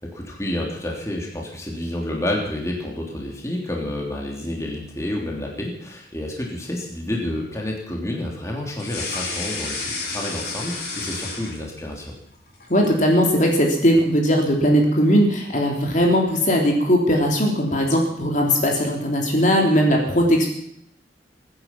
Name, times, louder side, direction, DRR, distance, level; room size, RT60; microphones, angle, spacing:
voice 1, 0.0-12.1, left 1 dB, 15° left, -1 dB, 3.2 m, -29 dB
sound 1, 8.7-12.0 12.3-13.0, left 3 dB, 65° left, 5.5 m, -31 dB
voice 2, 12.7-20.5, equal, 45° left, 0 dB, 3.2 m, -19 dB
23.0 x 10.0 x 6.0 m, 0.71 s
head